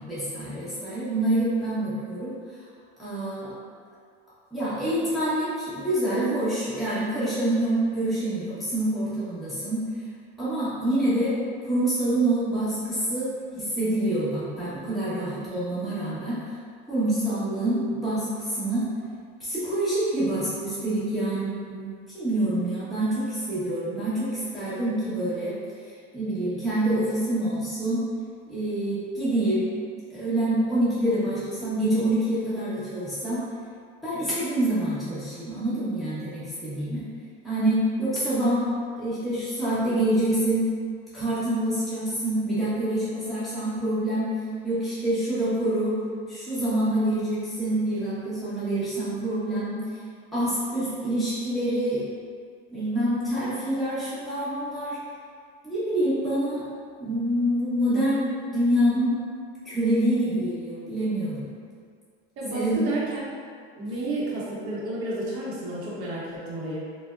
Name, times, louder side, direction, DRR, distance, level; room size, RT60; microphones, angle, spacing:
voice 1, 0.0-2.3 3.0-3.5 4.5-9.8 10.4-13.3 13.6-16.4 16.9-18.9 19.4-25.6 26.1-28.0 28.5-29.7 30.1-33.4 34.0-37.1 37.4-38.7 39.0-40.7 41.1-44.3 44.6-46.0 46.3-50.0 50.3-52.0 52.7-55.0 55.6-56.6 57.0-59.1 59.6-61.5 62.5-62.8, right 1 dB, ahead, -13 dB, 1.0 m, -26 dB
voice 2, 62.4-63.2 63.8-66.8, right 2 dB, 45° right, -7 dB, 0.8 m, -31 dB
3.4 x 2.1 x 2.4 m, 2.1 s
supercardioid pair, 105°, 32 cm